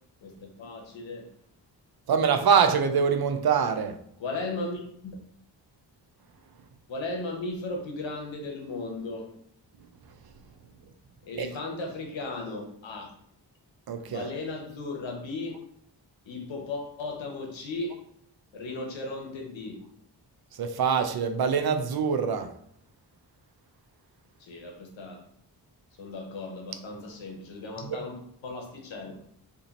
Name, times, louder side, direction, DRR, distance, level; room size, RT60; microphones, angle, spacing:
voice 1, 0.2-1.3 4.2-5.2 6.9-9.3 11.2-13.2 14.0-15.5 16.3-18.0 18.5-19.8 24.4-25.2 26.0-29.2, left 2 dB, 80° left, 2 dB, 0.9 m, -36 dB
voice 2, 2.1-3.9 11.4-11.5 13.9-14.3 20.6-22.5 27.9-28.0, right 6 dB, 55° right, 8 dB, 0.5 m, -24 dB
2.7 x 2.5 x 3.9 m, 0.69 s
cardioid pair, 55°, 45 cm